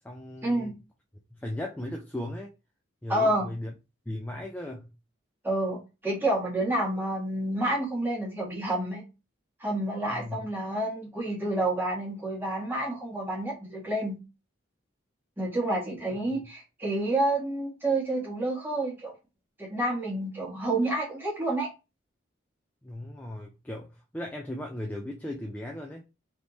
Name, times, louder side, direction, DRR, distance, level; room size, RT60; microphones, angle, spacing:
voice 1, 0.0-0.8 1.3-2.5 3.0-3.7 4.1-4.9 10.1-10.4 16.3-16.4 22.8-26.0, left 1 dB, 10° left, 0.4 m, -37 dB
voice 2, 3.1-3.5 5.4-9.0 9.6-14.2 15.4-19.1 19.6-21.7, right 1 dB, 10° right, 1.5 m, -29 dB
3.5 x 3.2 x 4.0 m
head